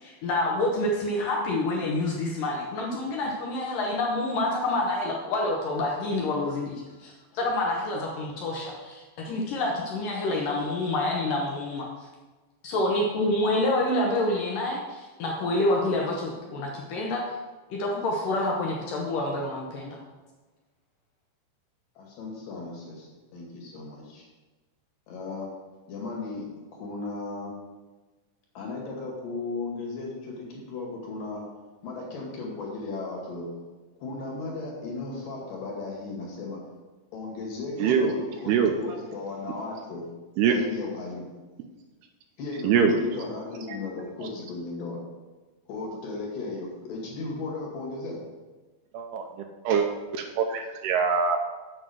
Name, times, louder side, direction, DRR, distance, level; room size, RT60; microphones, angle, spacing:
voice 1, 0.0-11.9 12.6-17.2 17.7-20.0, left 2 dB, 75° left, -1 dB, 2.0 m, -27 dB
voice 2, 21.9-24.3 25.1-25.5 25.9-27.5 28.5-31.4 31.8-33.5 34.0-36.6 37.1-40.0 40.4-41.3 42.4-45.0 45.7-48.2, left 3 dB, 55° left, -1 dB, 3.4 m, -36 dB
voice 3, 37.8-38.1 38.5-38.8 40.4-40.5 42.6-42.9 43.7-43.8 48.9-49.3 49.6-49.9 50.1-51.4, right 7 dB, 80° right, 4 dB, 2.5 m, -23 dB
7.9 x 6.2 x 6.3 m, 1.2 s
omnidirectional pair, 5.0 m